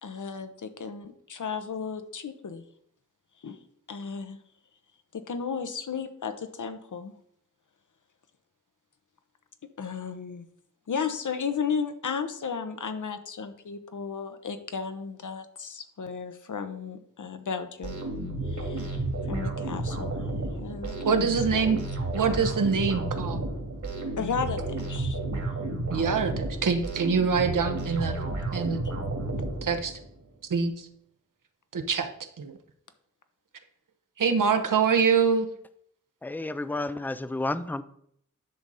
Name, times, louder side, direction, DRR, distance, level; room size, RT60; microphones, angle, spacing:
voice 1, 0.0-2.6 3.4-3.6 3.9-4.4 5.1-7.1 9.8-10.4 10.9-18.0 18.5-19.0 19.3-20.2 20.6-21.8 24.2-25.2, left 6 dB, 70° left, 9 dB, 0.9 m, -34 dB
sound 1, 17.8-30.0, right 2 dB, 65° right, 2.2 m, -32 dB
voice 2, 21.0-21.8 22.1-23.4 25.9-28.2 28.5-28.8 29.6-30.0 30.5-30.9 31.7-32.1 32.4-32.5 34.2-35.5, right 5 dB, 80° right, 6 dB, 1.0 m, -25 dB
voice 3, 36.2-37.8, left 2 dB, 5° left, 13 dB, 0.4 m, -31 dB
10.5 x 6.3 x 4.1 m, 0.69 s
wide cardioid pair, 100°, 31 cm